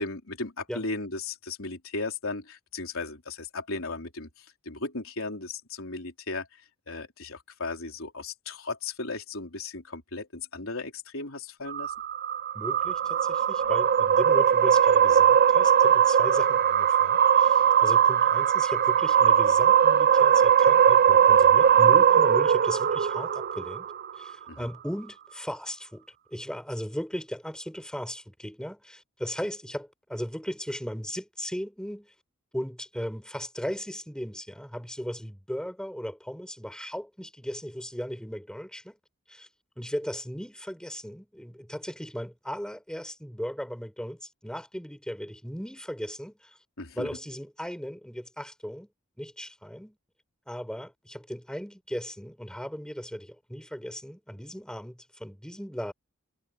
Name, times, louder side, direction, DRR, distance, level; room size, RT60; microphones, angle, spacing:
voice 1, 0.0-6.5 6.9-11.9 24.5-24.7 46.8-47.1, left 3 dB, 75° left, 4.0 m, -36 dB
sound 1, 11.7-24.2, right 8 dB, 45° right, 0.5 m, -20 dB
voice 2, 12.5-23.9 24.2-32.1 32.5-39.0 39.3-39.5 39.8-46.6 46.9-48.9 49.2-50.0 50.5-55.9, equal, 5° left, 6.3 m, -37 dB
head